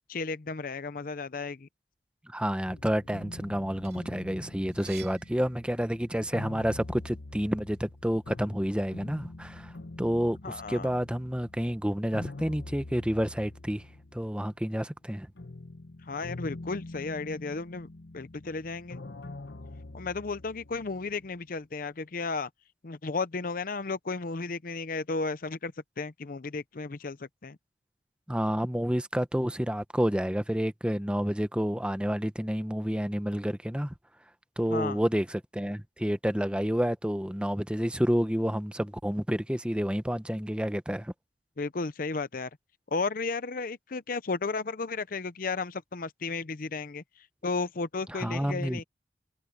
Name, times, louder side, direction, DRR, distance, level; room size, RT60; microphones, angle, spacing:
voice 1, 0.1-1.7 10.4-10.9 16.1-17.9 18.1-19.0 19.9-22.5 22.8-27.6 34.7-35.0 41.6-42.5 42.9-47.0 47.4-48.8, left 4 dB, 50° left, 0.7 m, -34 dB
voice 2, 2.3-9.7 10.0-13.8 14.1-15.3 28.3-33.9 34.6-41.1 48.1-48.8, equal, 5° right, 0.9 m, -29 dB
sound 1, 2.6-14.7 15.0-21.4, left 2 dB, 75° left, 1.1 m, -45 dB
sound 2, 3.8-6.2 6.7-8.1, right 10 dB, 60° right, 3.6 m, -53 dB
head